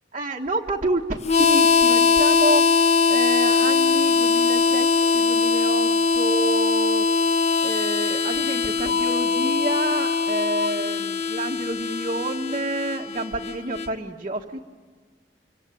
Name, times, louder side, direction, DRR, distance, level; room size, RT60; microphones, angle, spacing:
voice 1, 0.1-2.6 3.1-4.9 5.1-7.1 7.6-14.7, right 2 dB, 35° right, -2 dB, 1.4 m, -29 dB
Harmonica, 1.2-13.9, left 4 dB, 35° left, 0.8 m, -21 dB
25.5 x 24.5 x 9.1 m, 1.5 s
head